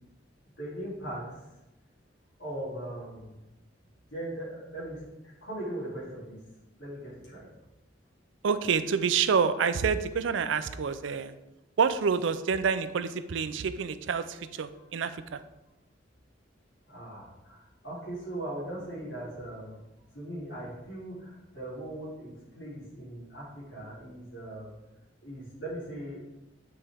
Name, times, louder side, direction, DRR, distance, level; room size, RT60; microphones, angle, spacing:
voice 1, 0.6-1.4 2.4-3.4 4.1-6.4 6.8-7.5 14.7-14.9 16.9-19.8 20.1-24.7 25.2-26.3, right 1 dB, 75° left, -8 dB, 2.6 m, -39 dB
voice 2, 8.4-11.3 11.8-15.4, right 6 dB, 75° right, 12 dB, 0.4 m, -28 dB
8.8 x 4.2 x 3.5 m, 0.97 s
head